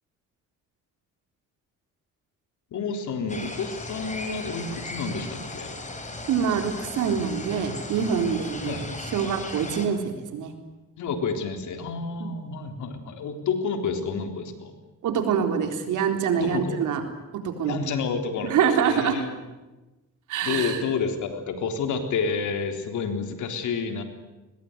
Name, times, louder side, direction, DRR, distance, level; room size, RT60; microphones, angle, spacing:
voice 1, 2.7-5.8 8.7-8.8 11.0-14.7 16.3-16.8 17.6-19.3 20.4-24.0, left 5 dB, 75° left, 6 dB, 3.7 m, -29 dB
sound 1, 3.3-9.9, left 2 dB, 25° left, 5.0 m, -37 dB
voice 2, 6.3-10.5 12.2-12.3 15.0-17.0 17.3-17.8 18.5-19.1 20.3-20.8, right 7 dB, 80° right, 5 dB, 3.9 m, -25 dB
22.5 x 21.0 x 9.6 m, 1.1 s
cardioid pair, 90°, 30 cm